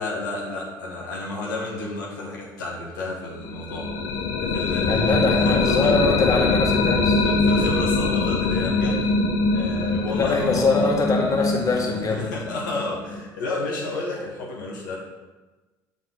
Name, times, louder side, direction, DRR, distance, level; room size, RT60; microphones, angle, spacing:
voice 1, 0.0-4.0 4.4-5.9 7.2-9.1 9.5-10.9 11.9-15.0, left 2 dB, 85° left, -4 dB, 1.0 m, -31 dB
sound 1, 3.4-13.2, left 3 dB, 70° left, 0.7 m, -23 dB
voice 2, 4.9-7.2 10.1-12.3, left 3 dB, 35° left, 0 dB, 1.5 m, -23 dB
6.7 x 3.8 x 3.8 m, 1.2 s
hypercardioid pair, 65°, 10 cm